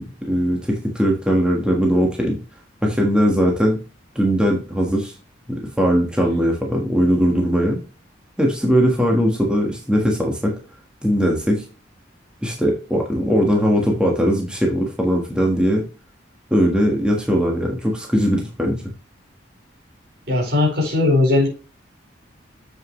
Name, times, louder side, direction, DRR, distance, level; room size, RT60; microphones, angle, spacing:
voice 1, 0.0-2.4 2.8-3.8 4.1-5.1 5.5-7.8 8.4-10.5 11.0-11.6 12.4-15.8 16.5-18.8, equal, 5° right, -1 dB, 1.4 m, -19 dB
voice 2, 20.3-21.5, left 2 dB, 55° right, -1 dB, 4.5 m, -18 dB
7.5 x 6.5 x 3.1 m, 0.34 s
head